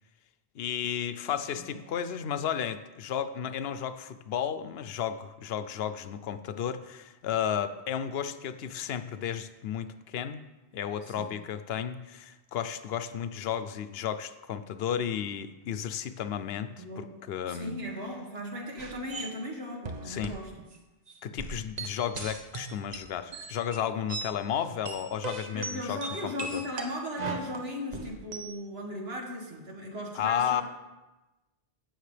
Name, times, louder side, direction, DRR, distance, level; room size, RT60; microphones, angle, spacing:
voice 1, 0.5-10.4 10.7-17.7 20.1-20.3 21.2-26.6 30.2-30.6, left 9 dB, 75° left, 11 dB, 0.8 m, -33 dB
voice 2, 16.8-17.2 17.5-20.5 25.5-30.6, left 1 dB, 80° right, -1 dB, 2.1 m, -37 dB
sound 1, 18.8-19.3 19.9-20.4 20.7-20.8 21.1-24.3 24.7-28.5, right 3 dB, 45° right, 1.0 m, -38 dB
16.5 x 6.5 x 3.3 m, 1.1 s
omnidirectional pair, 1.0 m